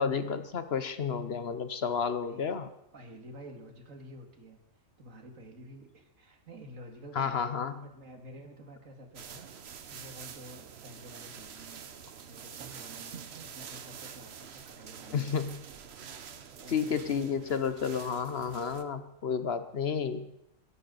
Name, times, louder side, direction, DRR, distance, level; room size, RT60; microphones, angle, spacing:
voice 1, 0.0-2.7 7.1-7.9 15.1-15.6 16.7-20.3, left 6 dB, 55° left, 11 dB, 1.0 m, -31 dB
voice 2, 2.9-4.6 5.0-7.4 7.8-11.8 12.2-15.4 16.5-17.4, equal, 80° right, 4 dB, 2.3 m, -50 dB
sound 1, 9.2-18.8, right 7 dB, 55° right, 1.1 m, -47 dB
22.0 x 11.0 x 4.0 m, 0.80 s
omnidirectional pair, 1.4 m